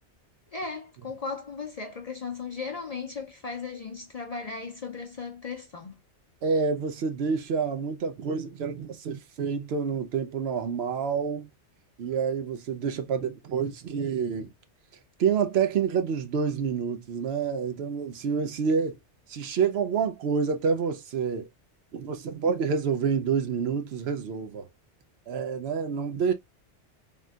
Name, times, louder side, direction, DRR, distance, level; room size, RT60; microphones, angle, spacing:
voice 1, 0.5-5.9, left 4 dB, 45° left, 0.5 m, -36 dB
voice 2, 6.4-11.5 12.0-14.5 15.2-19.0 19.3-21.5 21.9-24.7 25.3-26.3, right 6 dB, 70° right, 0.8 m, -28 dB
3.5 x 2.6 x 2.2 m
omnidirectional pair, 1.2 m